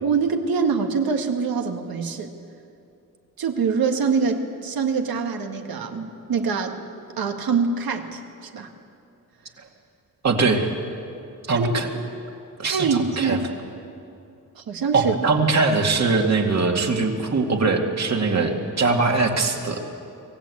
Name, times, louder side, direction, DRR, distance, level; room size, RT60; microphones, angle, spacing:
voice 1, 0.0-2.3 3.4-6.8 7.2-8.7 11.5-11.8 12.6-13.5 14.6-15.2, right 5 dB, 80° right, 4 dB, 1.7 m, -24 dB
voice 2, 10.2-10.7 11.5-11.9 12.6-13.4 14.9-19.8, right 3 dB, 50° right, 2 dB, 2.2 m, -21 dB
24.0 x 17.0 x 8.5 m, 2.6 s
wide cardioid pair, 160°, 35 cm